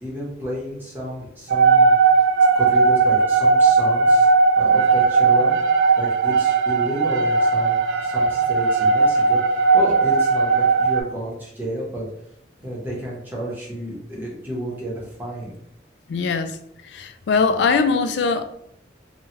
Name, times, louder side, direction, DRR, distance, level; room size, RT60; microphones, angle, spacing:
voice 1, 0.0-2.0 2.5-4.3 4.6-5.5 6.0-12.1 12.6-15.5, equal, 10° right, -6 dB, 0.9 m, -31 dB
sound 1, 1.5-11.0, right 4 dB, 70° right, 0.3 m, -17 dB
voice 2, 16.1-16.6 16.9-18.4, left 4 dB, 65° left, 9 dB, 0.3 m, -21 dB
3.1 x 2.3 x 2.8 m, 0.75 s
head